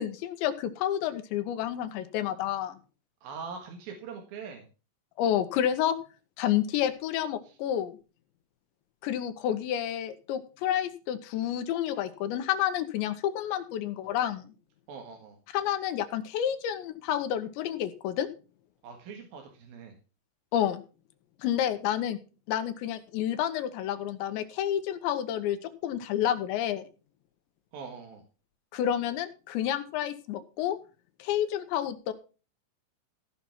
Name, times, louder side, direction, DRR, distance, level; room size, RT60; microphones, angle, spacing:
voice 1, 0.0-2.8 5.2-6.0 6.4-8.0 9.0-14.5 15.5-18.3 20.5-20.8 21.4-22.2 22.5-26.9 28.7-30.8 31.2-32.1, left 10 dB, 80° left, 10 dB, 3.2 m, -29 dB
voice 2, 3.2-4.6 14.9-15.4 18.8-20.0 27.7-28.2, right 5 dB, 60° right, 3 dB, 3.0 m, -42 dB
15.5 x 5.8 x 5.9 m, 0.34 s
omnidirectional pair, 5.3 m